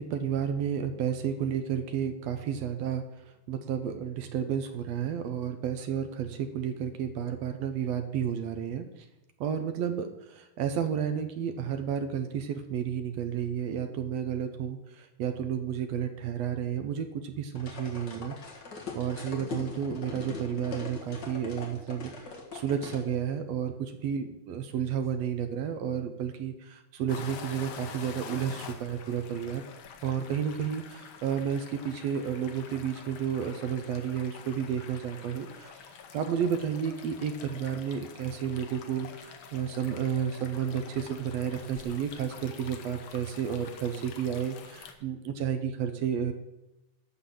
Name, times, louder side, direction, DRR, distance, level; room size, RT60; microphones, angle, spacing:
voice 1, 0.0-3.0 3.5-8.9 9.4-18.4 18.9-22.1 22.5-29.6 30.0-35.7 36.1-46.3, right 8 dB, 75° right, 8 dB, 1.7 m, -31 dB
sound 1, 17.5-23.0, left 4 dB, 40° left, 1.9 m, -41 dB
sound 2, 27.1-44.9, left 6 dB, 75° left, 1.2 m, -47 dB
11.5 x 4.0 x 7.6 m, 0.94 s
omnidirectional pair, 3.4 m